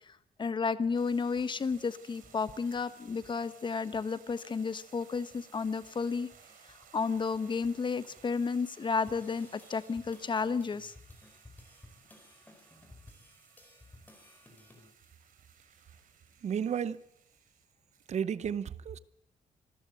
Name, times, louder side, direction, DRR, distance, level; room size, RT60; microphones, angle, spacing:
voice 1, 0.4-6.3 6.9-10.9, left 5 dB, 30° left, 1.1 m, -32 dB
sound 1, 0.8-3.6 3.9-4.4 4.8-4.9 5.1-8.4 9.0-14.9, left 1 dB, 10° left, 4.6 m, -58 dB
sound 2, 0.9-18.2, right 7 dB, 70° right, 3.6 m, -60 dB
voice 2, 16.4-17.0 18.1-19.0, right 8 dB, 50° right, 0.8 m, -32 dB
25.5 x 14.0 x 8.0 m
wide cardioid pair, 150°, 15 cm